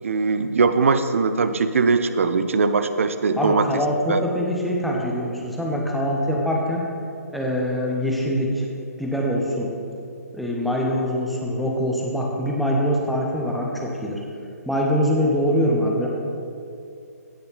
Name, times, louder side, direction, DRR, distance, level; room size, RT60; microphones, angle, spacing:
voice 1, 0.0-3.8 4.1-4.2, right 4 dB, 50° right, 11 dB, 0.5 m, -21 dB
voice 2, 3.4-6.9 7.3-8.6 9.0-9.7 10.3-14.2 14.7-16.1, equal, ahead, -3 dB, 1.0 m, -23 dB
16.5 x 5.7 x 4.0 m, 2.5 s
figure-of-eight pair, 135°, 9 cm